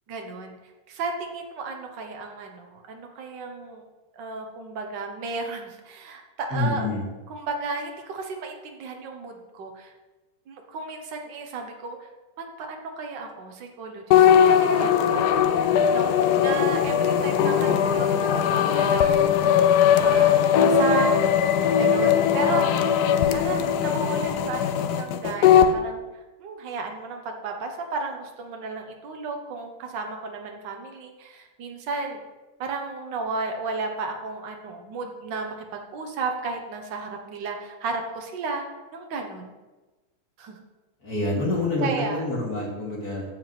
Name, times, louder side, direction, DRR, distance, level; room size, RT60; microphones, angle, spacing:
voice 1, 0.1-0.6 0.9-3.8 4.1-6.9 7.3-9.9 10.5-12.1 12.4-15.6 15.9-19.5 20.0-21.3 21.7-22.8 23.3-26.0 26.4-32.2 32.6-38.7 38.9-39.5 40.4-40.6 41.8-42.2, right 4 dB, 55° right, 3 dB, 1.8 m, -33 dB
voice 2, 6.5-7.0 41.0-43.2, left 2 dB, 40° left, -4 dB, 3.4 m, -27 dB
sound 1, 14.1-25.7, left 8 dB, 80° left, 0.9 m, -20 dB
9.3 x 7.2 x 6.0 m, 1.2 s
omnidirectional pair, 2.4 m